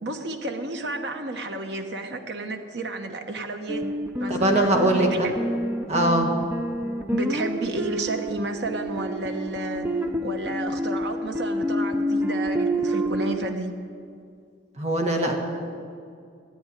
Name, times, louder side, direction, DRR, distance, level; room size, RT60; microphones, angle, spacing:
voice 1, 0.0-3.9 4.2-4.5 4.9-5.3 7.1-9.9 10.2-13.7, right 2 dB, 70° right, 5 dB, 1.1 m, -31 dB
sound 1, 3.7-13.5, equal, 10° right, 0.6 m, -28 dB
voice 2, 4.3-5.3 5.9-6.3 14.8-15.4, right 1 dB, 40° right, 2 dB, 1.7 m, -21 dB
14.0 x 8.8 x 9.9 m, 2.3 s
head